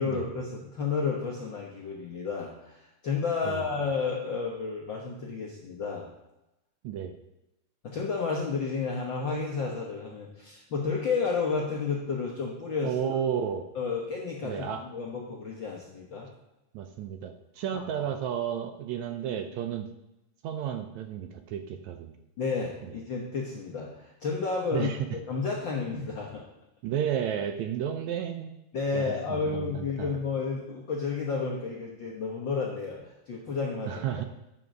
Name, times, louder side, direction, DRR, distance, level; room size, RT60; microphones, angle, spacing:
voice 1, 0.0-6.1 7.8-12.9 13.7-16.3 17.7-18.1 22.4-24.9 25.3-26.4 28.7-34.0, left 5 dB, 60° left, -2 dB, 1.2 m, -31 dB
voice 2, 12.8-13.7 14.4-14.8 16.7-19.9 20.4-22.1 24.7-25.0 26.8-28.5 28.9-30.1 33.9-34.3, right 9 dB, 75° right, 7 dB, 1.8 m, -32 dB
9.1 x 6.1 x 6.1 m, 0.91 s
omnidirectional pair, 3.7 m